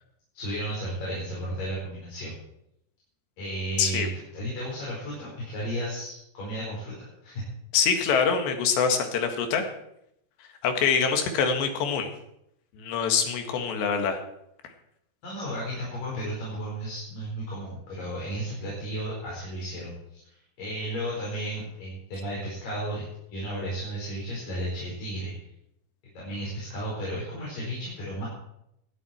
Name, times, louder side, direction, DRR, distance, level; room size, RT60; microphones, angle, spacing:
voice 1, 0.3-2.3 3.4-4.1 4.3-7.4 15.2-23.0 23.3-25.3 26.1-28.3, right 1 dB, 55° left, -5 dB, 6.6 m, -34 dB
voice 2, 7.7-9.6 10.6-12.1 12.8-14.2, left 6 dB, 85° left, 5 dB, 4.0 m, -24 dB
18.5 x 13.0 x 4.5 m, 0.78 s
omnidirectional pair, 4.9 m